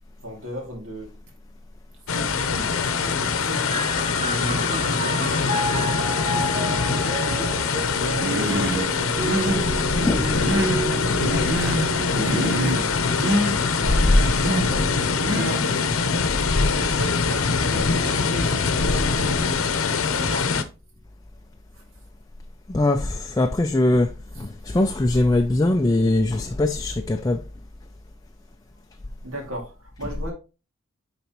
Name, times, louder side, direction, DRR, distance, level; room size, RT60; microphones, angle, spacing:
voice 1, 0.2-1.1 2.1-3.9 4.2-7.5 7.9-10.5 12.0-14.9 15.3-16.0 16.5-19.6 20.1-20.6 29.2-30.3, equal, 75° right, 2.3 m, -35 dB
sound 1, 2.1-20.6, left 5 dB, 80° left, 0.7 m, -23 dB
sound 2, 3.7-16.9 17.8-18.6, right 2 dB, 30° right, 0.6 m, -33 dB
Human voice, 8.2-8.9 9.2-9.7 10.1-10.9 11.2-11.9 12.2-12.9 13.2-13.5 14.1-14.7 15.2-15.7, right 1 dB, 60° right, 0.8 m, -26 dB
voice 2, 10.0-10.3 22.7-27.4, left 2 dB, 15° left, 0.3 m, -22 dB
9.3 x 4.0 x 2.9 m
head